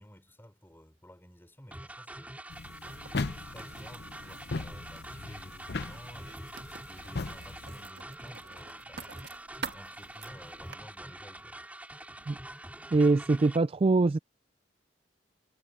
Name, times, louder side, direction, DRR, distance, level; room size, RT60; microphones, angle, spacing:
voice 1, 0.0-2.4 3.1-6.6 6.8-9.2 9.7-11.6, equal, 15° left, 3.9 m, -53 dB
sound 1, 1.7-13.6, right 1 dB, 10° right, 4.2 m, -45 dB
sound 2, 2.5-7.9, left 3 dB, 65° left, 0.7 m, -39 dB
Writing, 2.9-10.8, right 5 dB, 70° right, 1.7 m, -48 dB
voice 2, 12.9-14.2, right 3 dB, 30° right, 0.3 m, -23 dB
head